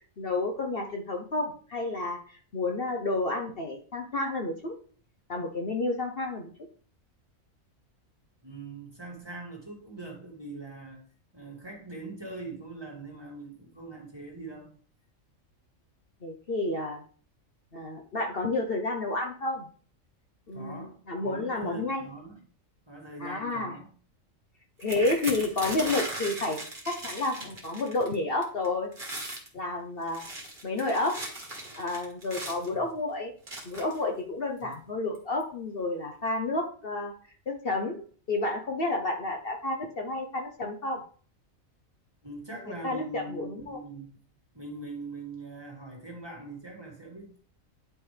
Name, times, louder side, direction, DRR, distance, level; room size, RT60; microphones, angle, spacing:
voice 1, 0.2-4.7 5.3-6.5 16.2-17.0 17.7-19.7 20.5-22.1 23.2-23.7 24.8-28.9 29.5-30.2 30.6-31.2 31.8-33.3 33.6-37.1 37.5-38.0 38.3-41.0 42.8-43.8, left 2 dB, 50° left, 2 dB, 1.1 m, -30 dB
voice 2, 8.4-11.0 11.3-14.7 20.5-22.4 22.9-23.9 34.6-34.8 42.2-44.2 44.5-47.4, right 2 dB, 20° right, -2 dB, 2.3 m, -42 dB
sound 1, 24.8-28.1 28.4-28.7 28.9-29.5 30.0-32.7 33.5-34.0 34.7-34.8 35.1-35.4, right 1 dB, 40° right, 2.1 m, -38 dB
10.0 x 5.2 x 3.4 m, 0.43 s
omnidirectional pair, 1.4 m